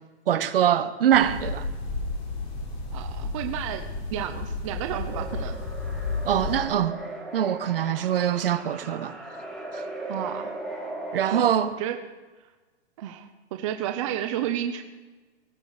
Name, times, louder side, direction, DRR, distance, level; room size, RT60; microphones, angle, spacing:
voice 1, 0.3-1.6 6.2-7.0 7.3-9.1 9.7-9.8 11.1-11.7, right 10 dB, 55° right, 1.3 m, -23 dB
sound 1, 1.1-6.6, left 3 dB, 30° left, 3.9 m, -32 dB
voice 2, 2.9-5.6 10.1-10.5 11.2-12.0 13.0-14.8, right 11 dB, 30° right, 0.9 m, -32 dB
sound 2, 5.1-11.5, right 2 dB, 5° left, 3.0 m, -38 dB
19.0 x 14.0 x 5.0 m
hypercardioid pair, 170°, 33 cm